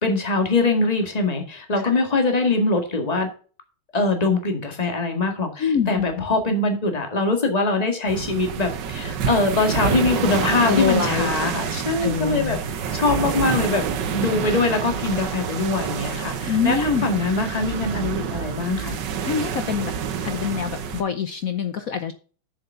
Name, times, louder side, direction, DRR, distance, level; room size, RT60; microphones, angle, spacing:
voice 1, 0.0-3.3 3.9-12.6 12.9-13.8 14.1-19.0, left 3 dB, 20° left, 4 dB, 1.8 m, -23 dB
voice 2, 5.6-6.3 10.7-11.3 12.0-12.6 16.5-17.1 19.2-19.9 20.2-22.1, left 7 dB, 60° left, 9 dB, 0.9 m, -25 dB
sound 1, 8.1-21.0, right 7 dB, 60° right, 1.5 m, -28 dB
7.3 x 6.9 x 6.8 m, 0.40 s
omnidirectional pair, 2.3 m